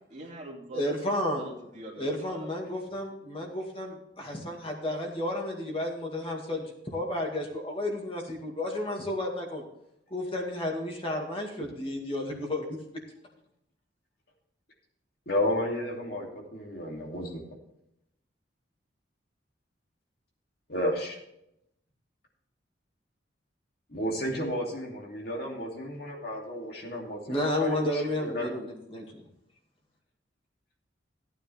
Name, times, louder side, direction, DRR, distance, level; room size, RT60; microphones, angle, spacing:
voice 1, 0.1-2.5, right 1 dB, 40° right, -1 dB, 2.5 m, -43 dB
voice 2, 0.7-1.4 2.0-9.6 10.1-12.8 27.3-29.2, left 1 dB, 30° left, 0 dB, 2.1 m, -32 dB
voice 3, 15.3-17.4 20.7-21.2 23.9-28.5, left 1 dB, 55° left, -1 dB, 2.7 m, -32 dB
15.0 x 9.3 x 3.4 m, 0.80 s
head